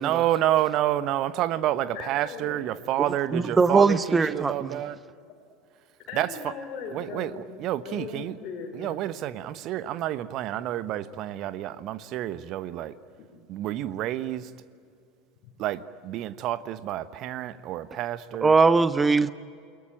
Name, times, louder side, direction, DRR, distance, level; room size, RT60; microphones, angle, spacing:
voice 1, 0.0-5.0 6.2-6.3 6.9-7.3 7.6-8.3 8.7-12.9 13.5-14.5 15.6-18.5, right 13 dB, 45° right, 1.1 m, -29 dB
voice 2, 1.9-2.7 6.1-9.2 13.2-13.3 15.4-15.5, left 5 dB, 40° left, 3.8 m, -39 dB
voice 3, 3.1-4.8 18.4-19.3, right 4 dB, 15° right, 0.9 m, -21 dB
29.0 x 22.0 x 8.9 m
figure-of-eight pair, 75°, 0 cm